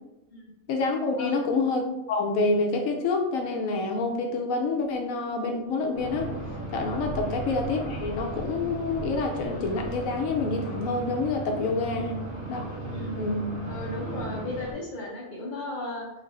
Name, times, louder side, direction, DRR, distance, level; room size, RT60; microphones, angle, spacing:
voice 1, 0.7-1.8 2.1-6.3 6.7-12.1 12.5-12.7 13.2-13.5, left 3 dB, 80° left, 3 dB, 1.0 m, -27 dB
sound 1, 5.9-14.7, right 2 dB, 40° right, 1.8 m, -35 dB
voice 2, 12.9-13.2 13.7-16.1, left 1 dB, 40° left, -2 dB, 0.9 m, -35 dB
3.3 x 3.2 x 3.7 m, 0.92 s
omnidirectional pair, 1.4 m